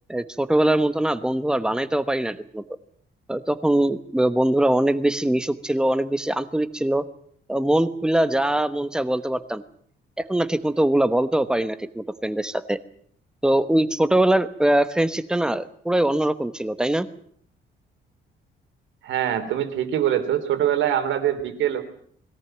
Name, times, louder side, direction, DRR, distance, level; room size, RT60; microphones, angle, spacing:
voice 1, 0.1-2.6 3.3-7.0 7.5-9.6 10.2-12.8 13.4-17.1, right 1 dB, 5° right, 12 dB, 1.0 m, -22 dB
voice 2, 19.0-21.8, right 10 dB, 85° right, 8 dB, 3.3 m, -23 dB
21.5 x 17.5 x 8.9 m, 0.63 s
cardioid pair, 160°, 19 cm